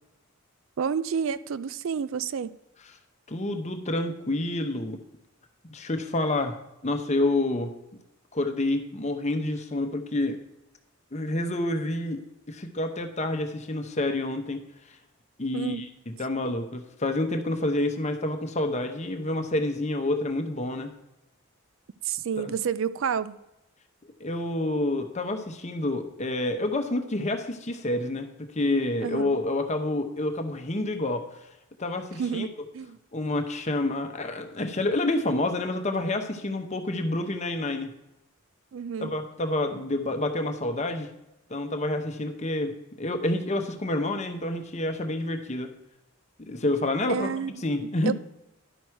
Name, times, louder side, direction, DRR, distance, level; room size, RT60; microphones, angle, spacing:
voice 1, 0.8-2.5 15.5-15.8 22.0-23.3 29.0-29.4 32.2-33.0 38.7-39.1 47.1-47.6 48.0-48.1, right 7 dB, 70° right, 0.4 m, -29 dB
voice 2, 3.3-5.0 5.6-6.5 6.8-7.7 8.3-10.4 11.1-12.2 12.5-14.6 15.4-20.9 22.4-22.5 24.2-28.3 28.5-31.2 31.8-32.5 33.1-37.9 39.0-41.1 41.5-45.7 46.4-48.1, left 2 dB, 35° left, 0.9 m, -28 dB
11.0 x 6.1 x 4.6 m
head